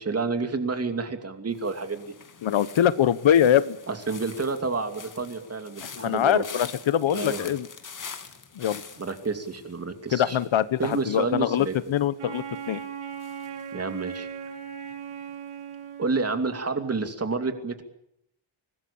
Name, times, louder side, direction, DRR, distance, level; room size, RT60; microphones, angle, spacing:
voice 1, 0.0-2.1 3.9-6.4 7.1-7.5 9.0-10.4 10.8-11.8 13.7-14.3 16.0-17.8, right 4 dB, 30° right, 7 dB, 2.7 m, -29 dB
sound 1, 1.5-14.6 14.8-15.3, left 5 dB, 40° left, 2.2 m, -45 dB
voice 2, 2.4-3.8 5.8-7.7 8.5-8.8 10.1-12.8, left 10 dB, 65° left, 16 dB, 1.0 m, -23 dB
Wind instrument woodwind instrument, 12.2-16.6, right 7 dB, 80° right, 3.8 m, -38 dB
24.5 x 20.0 x 8.6 m, 0.74 s
wide cardioid pair, 170°, 50 cm